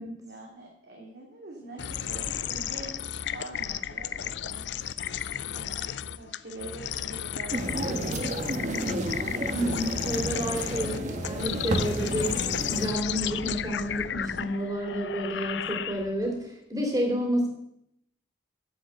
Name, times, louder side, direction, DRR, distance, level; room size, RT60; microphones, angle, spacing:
voice 1, 0.2-4.6 5.5-8.7, right 2 dB, 75° right, -2 dB, 2.5 m, -44 dB
sound 1, 1.8-16.3, left 9 dB, 85° left, 0.5 m, -34 dB
sound 2, 7.5-12.9, right 1 dB, 40° right, 1.3 m, -31 dB
voice 2, 9.5-12.3 12.7-17.5, equal, 20° right, 1 dB, 2.8 m, -30 dB
10.0 x 7.5 x 8.1 m, 0.80 s
head